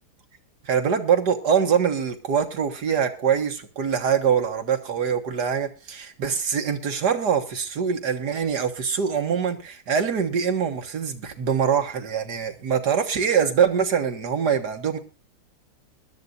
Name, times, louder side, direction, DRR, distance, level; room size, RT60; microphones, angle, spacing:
voice 1, 0.7-15.0, right 7 dB, 80° right, 5 dB, 2.2 m, -24 dB
21.5 x 12.5 x 2.6 m, 0.30 s
omnidirectional pair, 1.8 m